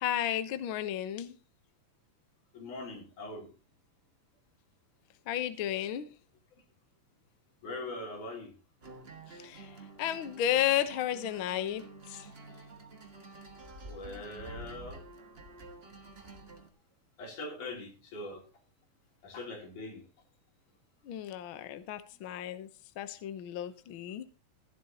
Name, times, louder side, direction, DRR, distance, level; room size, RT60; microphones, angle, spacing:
voice 1, 0.0-1.3 5.3-6.1 9.3-9.7 10.0-12.3 21.0-22.7 23.0-24.3, left 11 dB, 65° left, 11 dB, 1.3 m, -33 dB
voice 2, 2.5-3.5 7.6-8.5 13.8-15.0 17.2-18.4 19.2-20.0, left 2 dB, 85° left, 1 dB, 4.8 m, -41 dB
sound 1, 8.8-16.7, right 2 dB, 30° right, 1.2 m, -49 dB
15.5 x 11.5 x 2.9 m, 0.34 s
omnidirectional pair, 3.4 m